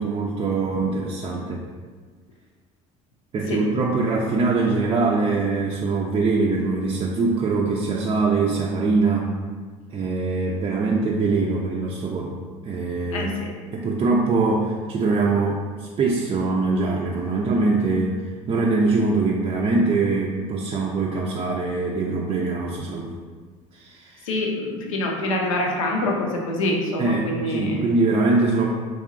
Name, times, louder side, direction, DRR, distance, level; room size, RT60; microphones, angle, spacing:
voice 1, 0.0-1.6 3.3-9.4 9.9-12.3 12.6-13.3 13.7-18.2 18.5-23.1 23.7-24.3 27.0-28.7, right 3 dB, 30° right, -2 dB, 0.4 m, -23 dB
voice 2, 13.1-13.5 24.3-27.8, left 1 dB, 90° left, 0 dB, 0.6 m, -25 dB
3.6 x 3.0 x 2.5 m, 1.5 s
hypercardioid pair, 75°, 17 cm